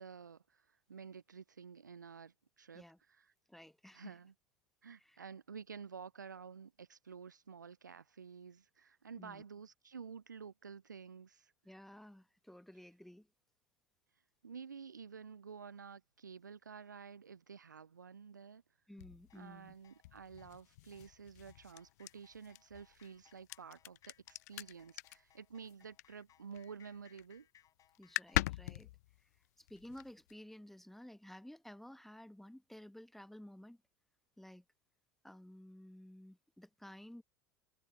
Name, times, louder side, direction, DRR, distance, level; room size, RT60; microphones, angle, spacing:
voice 1, 0.0-2.8 3.1-3.3 3.9-4.3 4.8-11.5 14.4-18.6 19.3-27.5, right 6 dB, 80° right, 0.5 m, -51 dB
voice 2, 3.5-4.1 5.0-5.2 9.2-9.4 11.6-13.3 18.9-19.7 28.0-28.9 29.2-33.8 34.4-34.6 35.2-37.2, left 1 dB, 5° left, 1.2 m, -54 dB
sound 1, 19.0-26.6 26.9-27.4 27.7-27.8 27.9-30.3, left 18 dB, 60° left, 0.4 m, -42 dB
sound 2, 19.3-28.6, left 10 dB, 35° left, 6.4 m, -69 dB
figure-of-eight pair, 75°, 10 cm